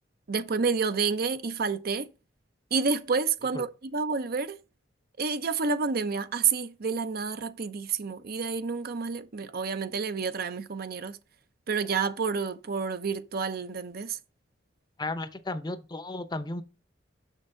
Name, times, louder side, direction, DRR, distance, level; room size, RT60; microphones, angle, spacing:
voice 1, 0.3-2.1 2.7-4.6 5.2-11.2 11.7-14.2, right 5 dB, 55° right, 0.6 m, -29 dB
voice 2, 15.0-16.6, left 2 dB, 25° left, 0.7 m, -34 dB
6.5 x 6.2 x 3.7 m
head